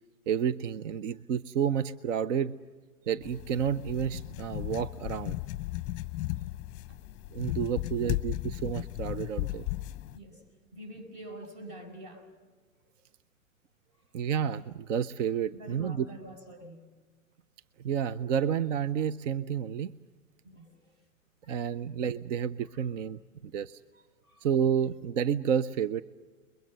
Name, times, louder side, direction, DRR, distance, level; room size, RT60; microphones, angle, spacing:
voice 1, 0.3-2.5 3.1-5.4 7.3-9.6 14.1-16.1 17.8-19.9 21.5-23.8 24.4-26.0, right 8 dB, 60° right, 15 dB, 0.8 m, -30 dB
sound 1, 3.2-10.2, left 17 dB, 25° left, 0.8 m, -35 dB
voice 2, 7.8-8.5 10.1-10.4 10.7-12.3 15.5-16.8 20.4-21.0 21.4-21.7 22.6-22.9 23.9-24.5, right 1 dB, 40° right, 6 dB, 6.9 m, -47 dB
30.0 x 22.5 x 6.8 m, 1.3 s
hypercardioid pair, 135°, 42 cm